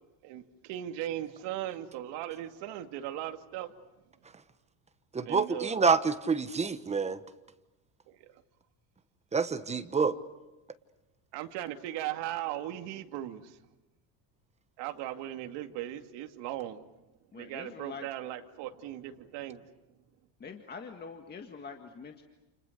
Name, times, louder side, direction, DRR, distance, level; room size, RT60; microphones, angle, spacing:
voice 1, 0.2-3.7 5.3-5.8 11.3-13.5 14.8-16.9 17.3-19.6, right 13 dB, 65° right, 6 dB, 2.5 m, -38 dB
voice 2, 5.1-7.2 9.3-10.1, right 5 dB, 15° right, 11 dB, 1.2 m, -27 dB
voice 3, 17.3-18.1 20.4-22.2, left 5 dB, 20° left, 5 dB, 1.8 m, -44 dB
30.0 x 29.5 x 6.6 m, 1.0 s
cardioid pair, 150°, 45 cm